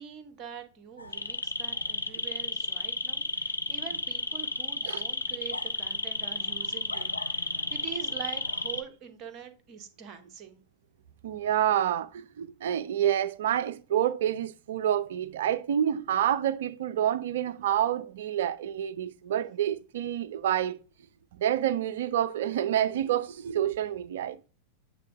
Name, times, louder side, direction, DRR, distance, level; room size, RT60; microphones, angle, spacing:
voice 1, 0.0-10.6, right 8 dB, 35° right, 1.0 m, -44 dB
sound 1, 1.0-8.8, left 3 dB, 80° left, 0.6 m, -32 dB
voice 2, 11.2-20.8 21.4-24.4, right 10 dB, 60° right, 0.4 m, -28 dB
8.3 x 3.5 x 3.4 m
figure-of-eight pair, 90°, 0 cm